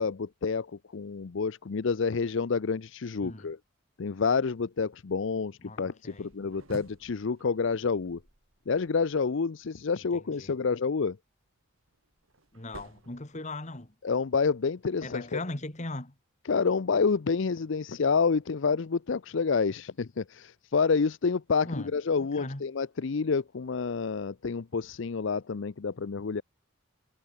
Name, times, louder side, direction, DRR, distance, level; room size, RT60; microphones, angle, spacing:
voice 1, 0.0-3.6 4.0-8.2 8.7-11.2 14.0-15.4 16.5-26.4, left 5 dB, 65° left, 0.5 m, -28 dB
voice 2, 5.6-6.3 10.4-10.5 12.5-13.9 15.0-16.1 21.7-21.9 22.2-22.6, left 2 dB, 35° left, 2.3 m, -38 dB
sound 1, 6.1-9.3 11.5-14.0, right 1 dB, 85° right, 3.9 m, -52 dB
head